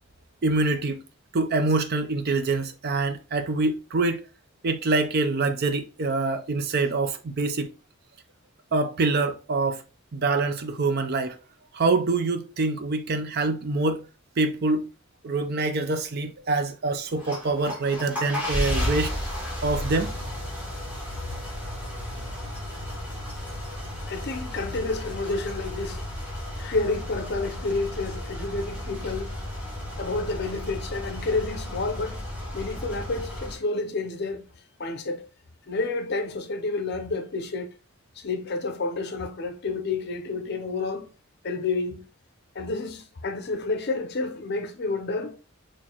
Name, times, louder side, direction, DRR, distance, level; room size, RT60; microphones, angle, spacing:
voice 1, 0.4-1.0 1.3-4.2 4.6-7.7 8.7-9.8 10.1-11.4 11.7-14.0 14.4-14.9 15.2-19.1 19.6-20.1, right 3 dB, 45° right, 0.5 m, -25 dB
sound 1, 17.1-33.5, left 1 dB, 5° right, 1.5 m, -33 dB
voice 2, 24.0-26.1 26.6-29.4 30.0-32.2 32.5-34.5 34.8-35.3 35.7-37.7 38.2-41.1 41.4-42.0 42.5-45.4, left 3 dB, 50° left, 0.6 m, -30 dB
4.4 x 3.1 x 2.8 m
head